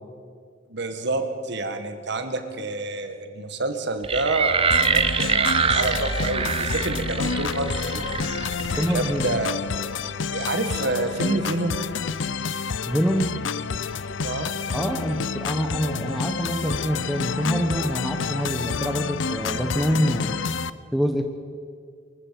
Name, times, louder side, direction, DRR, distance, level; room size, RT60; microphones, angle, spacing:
voice 1, 0.7-8.0 8.7-9.5 10.3-11.8 14.2-14.5, right 2 dB, 65° right, 7 dB, 1.8 m, -28 dB
sound 1, 4.0-9.3, right 5 dB, 30° right, 0.9 m, -25 dB
sound 2, 4.7-20.7, left 5 dB, 75° left, 0.6 m, -29 dB
voice 2, 8.7-9.4 12.9-13.4 14.7-20.4 20.9-21.2, equal, ahead, 3 dB, 1.0 m, -25 dB
23.5 x 14.5 x 7.7 m, 2.2 s
head